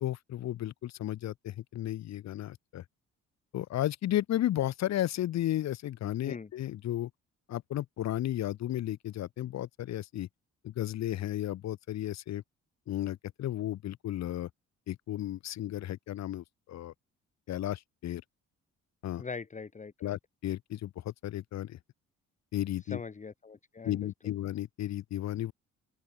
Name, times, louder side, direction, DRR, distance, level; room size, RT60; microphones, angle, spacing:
voice 1, 0.0-2.8 3.5-7.1 7.5-10.3 10.6-12.4 12.9-14.5 14.9-16.9 17.5-18.2 19.0-19.2 20.0-21.8 22.5-23.0 23.8-25.5, left 13 dB, 65° left, 0.8 m, -34 dB
voice 2, 19.2-20.2 22.9-24.3, left 4 dB, 25° left, 1.0 m, -42 dB
open air
cardioid pair, 90°, 30 cm